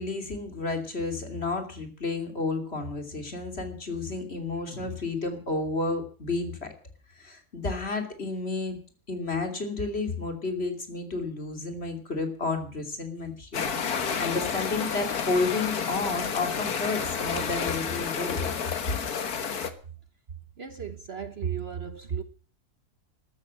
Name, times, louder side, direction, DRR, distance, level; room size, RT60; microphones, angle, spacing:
voice 1, 0.0-6.7 7.1-8.8 9.1-18.6, left 3 dB, 40° left, 3.1 m, -31 dB
sound 1, 13.5-19.7, left 6 dB, 75° left, 1.9 m, -30 dB
voice 2, 20.6-22.2, right 7 dB, 45° right, 1.1 m, -34 dB
13.5 x 13.0 x 7.6 m
omnidirectional pair, 1.6 m